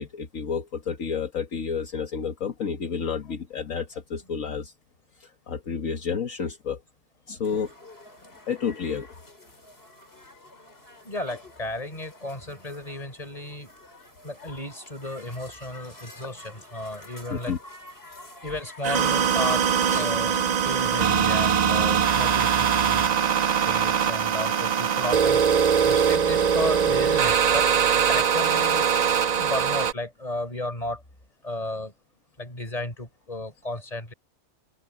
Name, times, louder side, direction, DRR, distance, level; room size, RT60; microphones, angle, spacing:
voice 1, 0.0-4.7 5.2-6.8 7.3-7.7 8.5-9.1 17.3-17.6 19.9-20.2, left 6 dB, 65° left, 1.8 m, -30 dB
sound 1, 7.4-26.8, left 2 dB, 40° left, 6.1 m, -48 dB
voice 2, 11.0-13.7 14.2-17.5 18.4-25.4 25.8-27.7 27.9-29.0 29.4-31.0 31.4-31.9 32.4-34.1, left 1 dB, 25° left, 4.9 m, -34 dB
sound 2, 18.8-29.9, right 7 dB, 70° right, 0.4 m, -22 dB
omnidirectional pair, 1.5 m